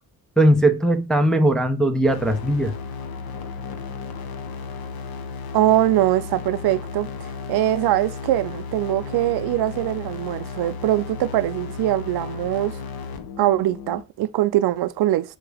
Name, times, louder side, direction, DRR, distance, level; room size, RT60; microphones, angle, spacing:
voice 1, 0.4-2.7, right 1 dB, ahead, 0.4 m, -19 dB
sound 1, 2.1-14.0, left 5 dB, 75° left, 0.9 m, -34 dB
voice 2, 5.5-7.1 7.5-12.7 13.4-15.4, right 14 dB, 85° right, 0.6 m, -22 dB
7.8 x 2.9 x 4.8 m
wide cardioid pair, 175°, 37 cm